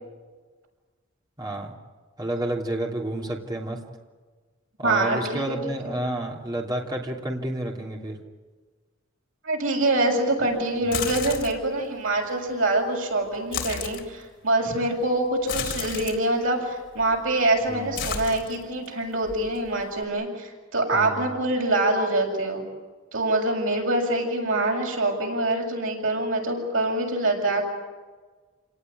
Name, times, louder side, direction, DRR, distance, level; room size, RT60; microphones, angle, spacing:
voice 1, 1.4-1.7 2.2-3.8 4.8-8.2 10.8-11.1 17.7-18.0 20.9-21.3, right 1 dB, 20° right, -1 dB, 2.9 m, -30 dB
voice 2, 4.8-5.6 5.8-6.0 9.4-22.6 23.1-27.7, right 2 dB, 75° right, 1 dB, 7.3 m, -25 dB
sound 1, 10.8-11.7 13.3-14.1 15.4-16.2 17.0-17.4 17.6-18.9 19.3-20.0, left 6 dB, 60° left, 3.9 m, -32 dB
28.5 x 18.5 x 9.8 m, 1.4 s
head